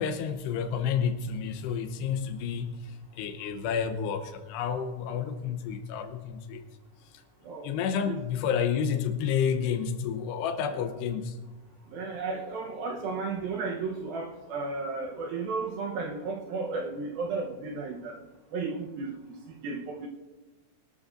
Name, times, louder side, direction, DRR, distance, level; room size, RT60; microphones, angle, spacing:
voice 1, 0.0-6.6 7.6-11.4, left 7 dB, 75° left, 8 dB, 2.9 m, -30 dB
voice 2, 7.4-8.2 10.7-10.8 11.9-18.1 18.5-19.2 19.6-20.1, right 4 dB, 75° right, 1 dB, 2.4 m, -34 dB
23.5 x 12.0 x 2.6 m, 1.2 s
omnidirectional pair, 5.1 m